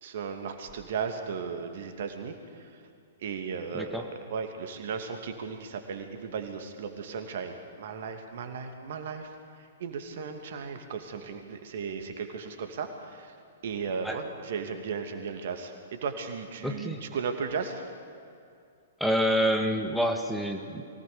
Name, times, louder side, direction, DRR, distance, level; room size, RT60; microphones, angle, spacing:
voice 1, 0.0-2.7 3.2-9.3 9.6-13.3 13.6-17.9, right 5 dB, 60° right, 6 dB, 2.6 m, -36 dB
voice 2, 3.7-4.0 14.0-14.2 16.6-17.0 19.0-21.0, equal, ahead, 3 dB, 1.7 m, -27 dB
24.0 x 18.0 x 7.0 m, 2.5 s
figure-of-eight pair, 115°, 0 cm